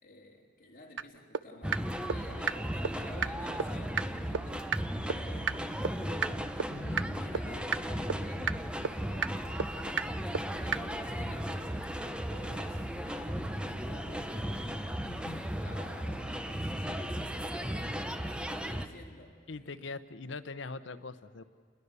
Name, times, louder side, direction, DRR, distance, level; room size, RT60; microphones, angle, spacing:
voice 1, 0.0-6.5 6.9-10.1 10.6-14.9 15.5-17.9 18.3-19.8, left 2 dB, 45° left, 0 dB, 3.5 m, -52 dB
sound 1, 1.0-1.1 1.3-1.4 1.7-1.8 2.1-2.2 2.5-2.6 2.8-2.9 3.2-3.3 3.6-3.7 4.0-4.1 4.3-4.4 4.7-4.8 5.1-5.2 5.5-5.6 5.8-5.9 6.2-6.3 6.6-6.7 7.0-7.1 7.3-7.4 7.7-7.8 8.1-8.2 8.5-8.6 8.8-8.9 9.2-9.3 9.6-9.7 10.0-10.1 10.3-10.4 10.7-10.8, right 7 dB, 80° right, 0.6 m, -29 dB
sound 2, 1.6-18.9, equal, 5° right, 0.8 m, -36 dB
voice 2, 6.7-7.1 15.0-15.4 19.5-21.4, left 3 dB, 80° left, 13 dB, 0.9 m, -42 dB
28.5 x 21.0 x 7.0 m, 2.1 s
head